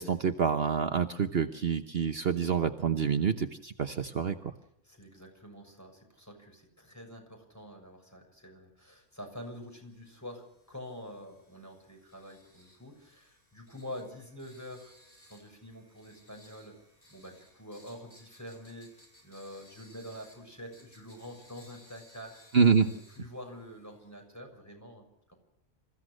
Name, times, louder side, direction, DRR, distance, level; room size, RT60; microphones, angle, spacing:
voice 1, 0.0-4.5 22.5-22.9, right 6 dB, 55° right, 7 dB, 1.2 m, -27 dB
voice 2, 4.8-14.9 15.3-16.8 17.1-22.4 23.2-25.4, equal, 15° left, 2 dB, 6.7 m, -46 dB
sound 1, 9.2-24.1, equal, 45° left, 8.2 m, -61 dB
27.5 x 16.0 x 6.4 m, 0.77 s
omnidirectional pair, 1.2 m